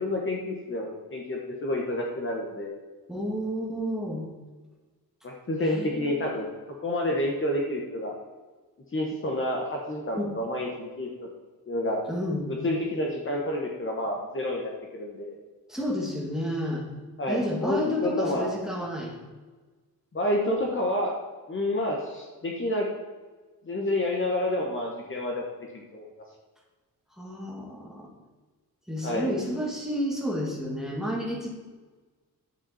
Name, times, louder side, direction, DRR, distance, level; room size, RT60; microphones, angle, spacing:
voice 1, 0.0-2.7 5.2-8.2 8.9-11.3 11.7-12.0 12.5-15.4 17.2-18.5 20.1-21.1 21.5-22.9 23.6-25.4 25.7-26.1 29.0-29.3, left 1 dB, 35° left, 0 dB, 1.4 m, -29 dB
voice 2, 3.1-4.3 5.6-6.2 10.1-10.3 12.1-12.5 15.7-16.9 17.3-19.2 27.1-28.1 28.9-31.5, equal, ahead, -2 dB, 2.1 m, -31 dB
11.0 x 8.4 x 4.4 m, 1.3 s
wide cardioid pair, 165°, 37 cm